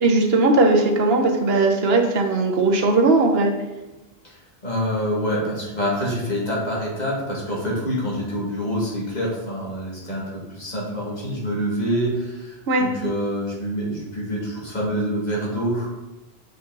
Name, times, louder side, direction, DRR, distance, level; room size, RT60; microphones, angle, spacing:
voice 1, 0.0-3.5 12.7-12.8, right 3 dB, 65° right, 2 dB, 1.2 m, -18 dB
voice 2, 4.6-15.9, equal, 40° left, -5 dB, 2.2 m, -26 dB
6.5 x 5.0 x 4.0 m, 1.0 s
omnidirectional pair, 1.1 m